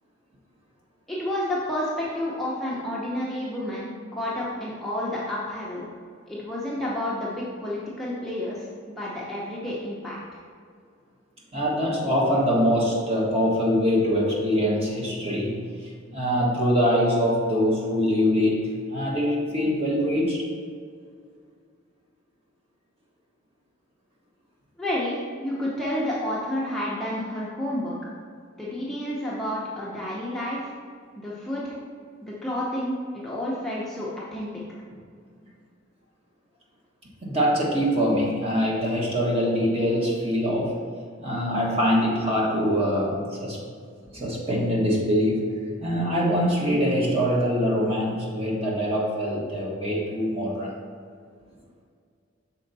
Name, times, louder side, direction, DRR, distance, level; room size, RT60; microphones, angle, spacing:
voice 1, 1.1-5.8 6.3-8.7 9.0-10.2 24.8-27.9 28.6-30.7 31.2-31.8 32.2-34.5, left 1 dB, ahead, -7 dB, 0.8 m, -30 dB
voice 2, 11.5-15.7 16.1-20.4 37.2-40.7 41.2-43.6 44.1-45.5 45.8-50.8, equal, 30° right, -4 dB, 1.4 m, -23 dB
6.4 x 4.4 x 4.0 m, 2.1 s
head